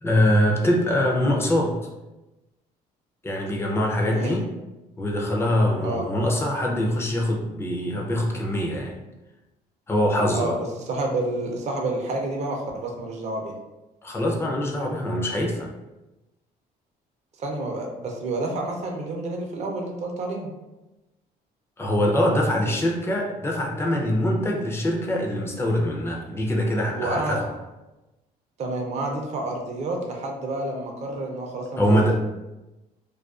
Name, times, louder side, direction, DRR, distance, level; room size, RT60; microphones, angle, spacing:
voice 1, 0.0-1.8 3.2-4.5 5.0-9.0 9.9-10.6 14.0-15.7 21.8-27.5 31.8-32.2, left 1 dB, 15° left, -1 dB, 0.4 m, -23 dB
voice 2, 10.9-13.5 17.4-20.5 22.6-22.7 26.9-27.4 28.6-32.2, right 2 dB, 40° right, 1 dB, 0.5 m, -29 dB
2.4 x 2.2 x 2.3 m, 1.0 s
cardioid pair, 110°, 17 cm